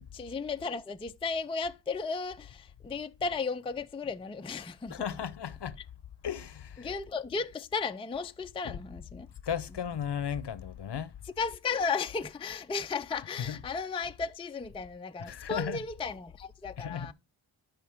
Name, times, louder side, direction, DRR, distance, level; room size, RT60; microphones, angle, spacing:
voice 1, 0.1-5.2 6.8-9.3 11.4-17.1, left 5 dB, 15° left, 0.4 m, -35 dB
voice 2, 4.9-5.8 6.2-6.9 8.6-8.8 9.4-11.1 13.5-13.6 15.2-15.8 16.8-17.1, left 8 dB, 55° left, 0.7 m, -35 dB
11.0 x 5.2 x 3.5 m
wide cardioid pair, 55°, 48 cm